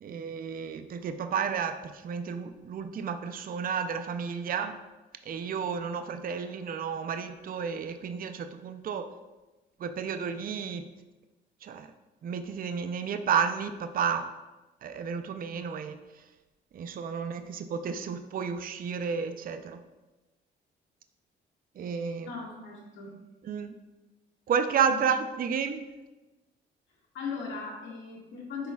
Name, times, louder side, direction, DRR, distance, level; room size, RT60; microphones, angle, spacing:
voice 1, 0.0-4.7 5.3-9.1 9.8-10.8 11.6-11.9 12.2-14.3 14.8-16.0 16.7-19.8 21.8-22.3 23.4-23.7 24.5-25.9, right 6 dB, 45° right, 8 dB, 0.5 m, -31 dB
voice 2, 22.2-23.1 24.9-25.0 27.1-28.7, left 5 dB, 75° left, -3 dB, 1.8 m, -38 dB
10.0 x 4.1 x 2.3 m, 1.1 s
cardioid pair, 90°, 20 cm